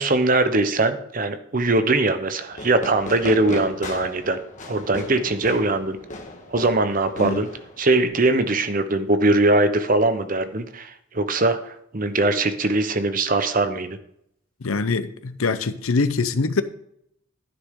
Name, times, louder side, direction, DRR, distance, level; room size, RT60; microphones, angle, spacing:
voice 1, 0.0-4.4 4.6-6.0 6.5-7.5 7.8-14.0, right 2 dB, 40° right, 10 dB, 0.9 m, -21 dB
Fireworks, 2.5-8.1, left 2 dB, 35° left, 1.6 m, -37 dB
voice 2, 14.6-16.6, left 4 dB, 90° left, 13 dB, 0.7 m, -23 dB
11.5 x 10.0 x 3.7 m, 0.72 s
head